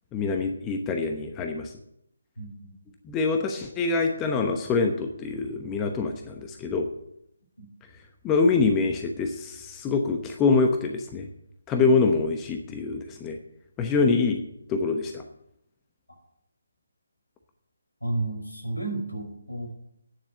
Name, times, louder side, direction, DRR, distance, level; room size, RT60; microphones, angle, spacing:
voice 1, 0.1-1.7 3.0-6.9 8.2-11.3 11.7-13.4 13.8-14.4 14.7-15.2, left 4 dB, 15° left, 4 dB, 0.9 m, -25 dB
voice 2, 2.4-2.9 7.6-7.7 11.8-12.0 13.9-14.1 18.0-19.7, right 2 dB, 85° left, 0 dB, 5.3 m, -32 dB
9.8 x 7.2 x 8.8 m, 0.77 s
figure-of-eight pair, 150°, 0 cm